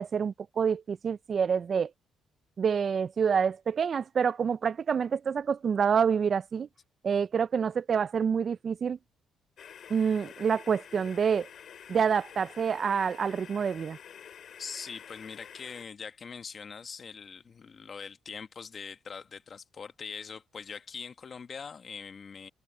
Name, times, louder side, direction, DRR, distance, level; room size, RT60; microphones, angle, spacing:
voice 1, 0.0-1.9 2.6-6.7 7.0-9.0 9.9-11.5 11.9-14.0, right 6 dB, 50° right, 0.3 m, -27 dB
sound 1, 9.6-15.8, left 8 dB, 60° left, 3.5 m, -49 dB
voice 2, 14.6-22.5, left 6 dB, 45° left, 1.3 m, -42 dB
cardioid pair, 90°, 0 cm